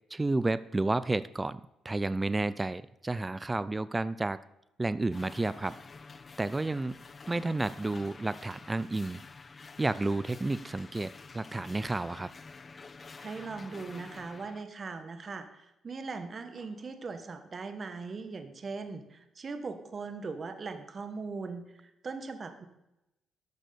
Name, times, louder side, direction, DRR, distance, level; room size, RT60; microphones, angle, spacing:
voice 1, 0.1-4.4 4.8-5.8 6.4-6.9 7.3-9.2 9.8-12.3, right 2 dB, 20° right, 17 dB, 0.4 m, -31 dB
sound 1, 5.1-14.6, left 4 dB, 35° left, 0.6 m, -49 dB
sound 2, 5.5-6.1 7.9-8.3 10.1-10.4 12.2-12.5 14.0-14.4 15.0-15.2 16.6-17.0, left 4 dB, 85° left, 3.2 m, -61 dB
voice 2, 13.2-22.7, right 4 dB, 40° right, 9 dB, 1.3 m, -40 dB
12.0 x 6.4 x 6.8 m, 0.91 s
cardioid pair, 90°, 0 cm